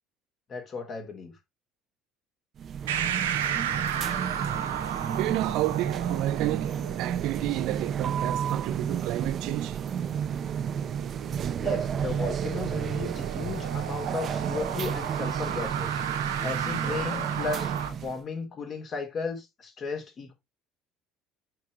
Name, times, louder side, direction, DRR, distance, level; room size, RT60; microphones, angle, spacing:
voice 1, 0.5-1.3 11.6-16.0 16.4-20.3, left 5 dB, 40° left, 3.3 m, -35 dB
sound 1, 2.6-18.2, right 8 dB, 40° right, 0.8 m, -31 dB
sound 2, 2.9-17.9, right 9 dB, 75° right, 0.9 m, -35 dB
voice 2, 5.2-9.8, right 18 dB, 60° right, 0.5 m, -31 dB
8.3 x 4.7 x 3.8 m
figure-of-eight pair, 60°, 0 cm